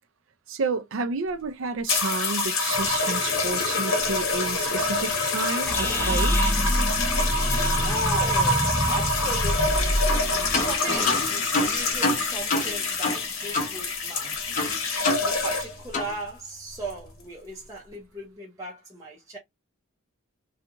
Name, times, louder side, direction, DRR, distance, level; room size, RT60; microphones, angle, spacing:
voice 1, 0.5-6.4, right 4 dB, 70° right, 0.4 m, -30 dB
sound 1, 1.9-15.9 16.8-17.1, left 2 dB, 85° left, 1.1 m, -26 dB
sound 2, 5.7-10.7, equal, 10° left, 0.3 m, -26 dB
voice 2, 7.8-10.0 10.4-14.3 15.2-19.4, right 1 dB, 15° right, 0.7 m, -37 dB
sound 3, 10.1-10.3 10.5-13.7 14.0-14.1 14.6-15.7 15.9-16.1, left 2 dB, 35° left, 0.7 m, -28 dB
2.4 x 2.3 x 2.8 m
head